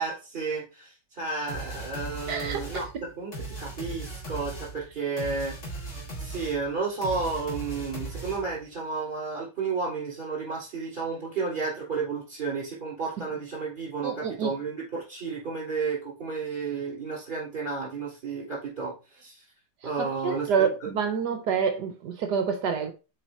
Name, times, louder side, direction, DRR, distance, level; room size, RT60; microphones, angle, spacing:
voice 1, 0.0-2.9 3.2-5.5 6.2-19.4 19.8-20.9, right 4 dB, 25° right, 4.0 m, -32 dB
sound 1, 1.5-8.7, right 2 dB, 35° left, 2.1 m, -38 dB
voice 2, 2.3-2.7 2.9-3.0 14.0-14.5 20.0-22.9, right 6 dB, 65° right, 1.2 m, -27 dB
7.6 x 4.7 x 2.7 m
omnidirectional pair, 2.2 m